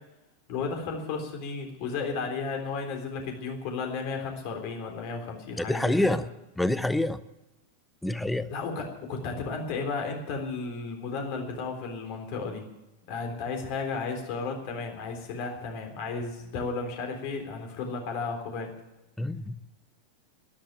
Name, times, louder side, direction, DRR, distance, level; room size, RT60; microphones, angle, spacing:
voice 1, 0.5-6.2 8.5-12.7 13.1-18.7, left 4 dB, 45° left, 3 dB, 3.6 m, -33 dB
voice 2, 5.6-6.2 6.6-7.2 8.0-8.5 19.2-19.6, left 1 dB, 5° left, 15 dB, 0.8 m, -26 dB
13.0 x 12.0 x 9.3 m, 0.97 s
figure-of-eight pair, 90°, 0 cm